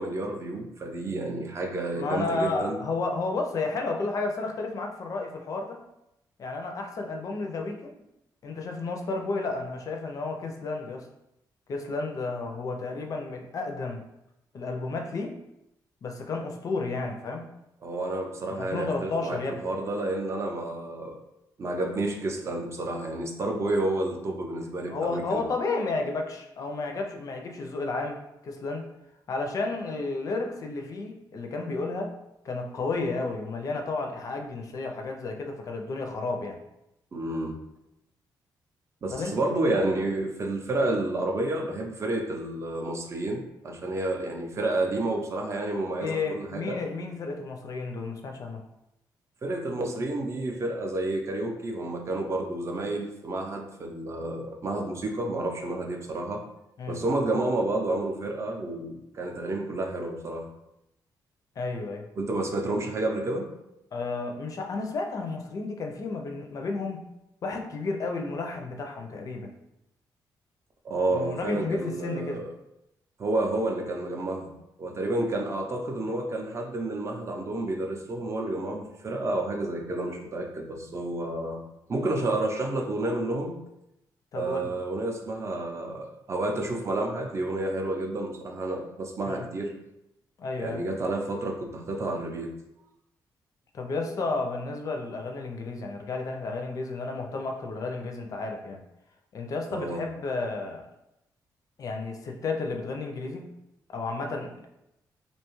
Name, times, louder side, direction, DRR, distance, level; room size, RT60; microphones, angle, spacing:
voice 1, 0.0-2.8 17.8-21.2 21.6-25.4 37.1-37.6 39.0-46.8 49.4-56.4 56.9-60.5 62.2-63.5 70.8-72.5 73.2-74.5 74.8-81.6 81.9-83.6 84.3-89.7 90.6-92.5 99.7-100.0, right 2 dB, 40° right, 2 dB, 0.5 m, -30 dB
voice 2, 1.9-5.8 6.4-7.9 8.4-11.1 11.7-14.0 14.5-15.4 16.0-17.5 18.5-19.6 24.9-28.9 29.3-32.1 32.4-36.6 39.1-39.4 46.0-48.6 56.8-57.0 61.6-62.1 63.9-67.1 67.4-69.5 71.1-72.4 84.3-84.7 89.3-89.5 90.4-90.8 93.7-98.8 99.3-100.8 101.8-103.5 103.9-104.7, left 3 dB, 50° left, 3 dB, 0.4 m, -32 dB
2.6 x 2.2 x 3.0 m, 0.86 s
cardioid pair, 110°, 8 cm